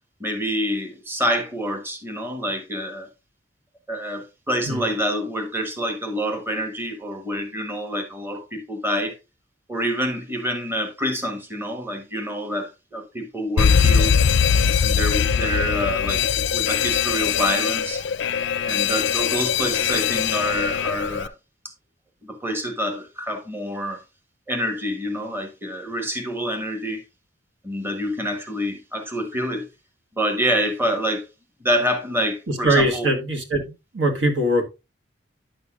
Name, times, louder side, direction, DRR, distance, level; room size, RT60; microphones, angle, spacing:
voice 1, 0.2-3.1 3.9-9.2 9.7-14.1 14.8-18.0 18.6-21.3 22.3-24.0 24.5-27.0 27.6-29.7 30.2-31.3 31.6-33.1, equal, 10° right, 1.2 m, -27 dB
Alarm, 13.6-21.3, left 7 dB, 70° left, 0.4 m, -21 dB
voice 2, 32.5-33.6 33.9-34.7, right 1 dB, 80° right, 1.5 m, -21 dB
9.8 x 6.7 x 2.4 m
head